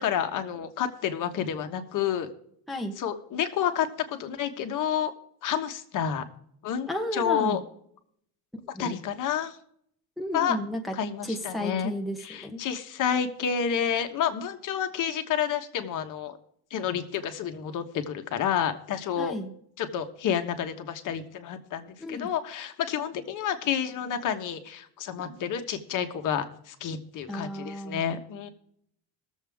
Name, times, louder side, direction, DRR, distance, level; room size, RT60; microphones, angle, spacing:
voice 1, 0.0-2.3 3.0-5.1 5.4-6.2 6.6-7.6 8.8-9.6 10.3-10.6 10.9-11.9 12.2-16.4 16.7-19.4 19.8-28.5, left 8 dB, 50° left, 7 dB, 1.3 m, -29 dB
voice 2, 6.9-7.6 8.7-9.0 10.2-10.9 11.2-12.6 19.2-19.5 22.0-22.3 25.2-25.4 27.3-28.1, left 1 dB, ahead, 1 dB, 1.0 m, -33 dB
20.0 x 7.4 x 3.5 m, 0.68 s
cardioid pair, 160°, 39 cm